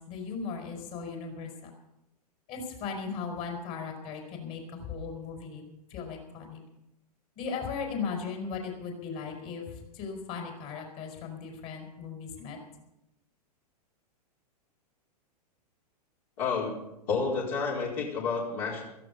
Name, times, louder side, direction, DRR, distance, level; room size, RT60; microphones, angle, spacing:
voice 1, 0.1-1.7 2.5-6.6 7.4-12.6, left 5 dB, 45° left, 2 dB, 5.0 m, -37 dB
voice 2, 16.4-16.7 17.1-18.8, left 5 dB, 60° left, -4 dB, 4.4 m, -30 dB
16.5 x 14.5 x 5.5 m, 0.88 s
hypercardioid pair, 105°, 21 cm